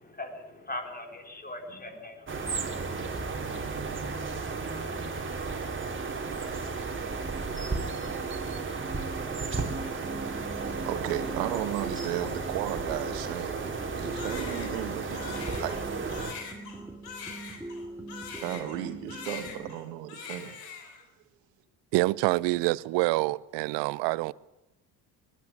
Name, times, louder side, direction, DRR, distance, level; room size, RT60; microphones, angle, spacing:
voice 1, 0.0-3.2, left 2 dB, 20° left, 4.3 m, -41 dB
sound 1, 2.3-16.3, right 4 dB, 25° right, 3.2 m, -34 dB
sound 2, 6.9-19.7, right 2 dB, 5° right, 2.8 m, -43 dB
voice 2, 10.2-15.9 18.4-20.5, right 11 dB, 75° right, 2.0 m, -35 dB
Crying sobbing, 14.1-18.8 19.1-19.8 20.1-21.0, left 6 dB, 80° left, 3.6 m, -42 dB
voice 3, 21.9-24.3, right 21 dB, 60° right, 0.7 m, -26 dB
21.0 x 13.0 x 9.8 m
hypercardioid pair, 60°, 48 cm